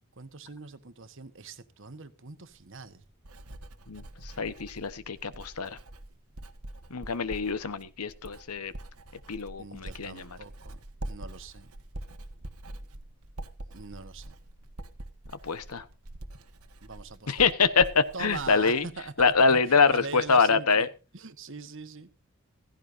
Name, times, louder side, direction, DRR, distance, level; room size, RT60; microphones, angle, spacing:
voice 1, 0.2-3.0 9.6-11.7 13.7-14.3 16.8-17.5 18.1-20.8 21.1-22.1, right 4 dB, 55° right, 1.3 m, -42 dB
Writing, 2.5-19.6 19.9-20.3, right 1 dB, 85° right, 1.5 m, -45 dB
voice 2, 3.9-5.8 6.9-8.7 9.3-10.4 15.4-15.8 17.3-18.9 19.2-20.9, left 5 dB, 85° left, 1.1 m, -25 dB
15.5 x 15.5 x 2.7 m
head